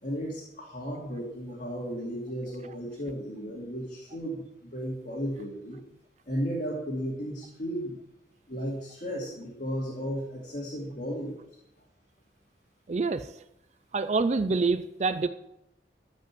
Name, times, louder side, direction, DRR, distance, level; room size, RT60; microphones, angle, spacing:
voice 1, 0.0-5.8 6.3-8.0 8.5-11.4, equal, 45° left, -4 dB, 2.4 m, -34 dB
voice 2, 12.9-13.3 13.9-15.3, right 4 dB, 40° right, 12 dB, 0.4 m, -26 dB
14.5 x 5.3 x 7.6 m, 0.84 s
head